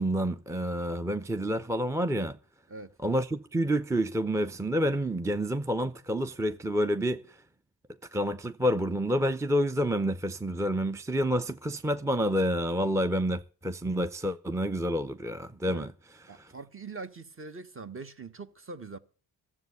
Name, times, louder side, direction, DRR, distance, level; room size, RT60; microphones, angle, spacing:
voice 1, 0.0-2.4 3.0-7.4 8.1-15.9, equal, 5° right, 0.6 m, -28 dB
voice 2, 16.3-19.0, right 3 dB, 35° right, 1.3 m, -42 dB
13.0 x 7.7 x 8.0 m
cardioid pair, 80°, 40 cm